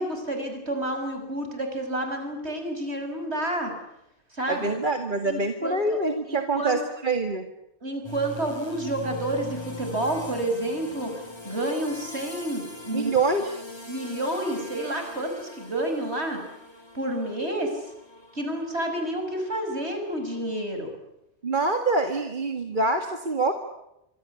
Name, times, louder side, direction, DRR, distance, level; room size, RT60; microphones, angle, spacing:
voice 1, 0.0-3.7 4.3-4.7 5.2-6.0 6.3-6.8 7.8-11.1 11.4-13.1 13.9-16.4 16.9-17.7 18.3-20.9, right 1 dB, 65° right, 5 dB, 6.6 m, -29 dB
voice 2, 4.5-7.5 12.9-13.6 21.4-23.5, right 3 dB, 45° right, 6 dB, 2.1 m, -25 dB
sound 1, 8.0-20.6, left 1 dB, 20° left, 4.5 m, -42 dB
25.5 x 25.5 x 8.4 m, 0.85 s
omnidirectional pair, 1.2 m